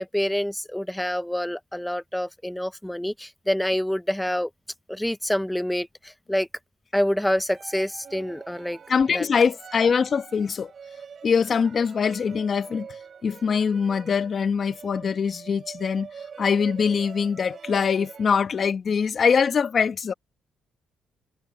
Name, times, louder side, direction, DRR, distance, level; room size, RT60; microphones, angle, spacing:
voice 1, 0.0-4.5 4.9-6.5 6.9-8.8 9.1-9.3, equal, 5° left, 1.0 m, -27 dB
sound 1, 7.5-18.3, right 6 dB, 50° right, 5.3 m, -44 dB
voice 2, 8.9-10.7 11.2-12.9 13.2-16.1 16.4-20.1, left 6 dB, 45° left, 1.4 m, -23 dB
cardioid pair, 90°, 0 cm